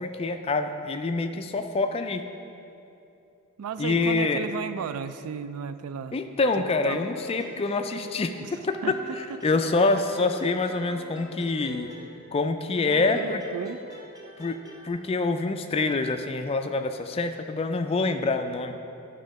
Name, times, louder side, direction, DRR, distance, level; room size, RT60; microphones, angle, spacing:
voice 1, 0.0-2.2 3.8-4.5 6.1-11.9 12.3-13.4 14.4-18.7, left 3 dB, 25° left, 6 dB, 0.3 m, -26 dB
voice 2, 3.6-6.2 6.6-7.0 8.4-8.5 8.8-8.9 12.8-13.8, right 7 dB, 85° right, 12 dB, 0.3 m, -34 dB
sound 1, 6.9-8.6 8.9-12.5 12.9-14.9, right 1 dB, 15° right, 0.7 m, -46 dB
10.0 x 3.7 x 5.2 m, 2.7 s
head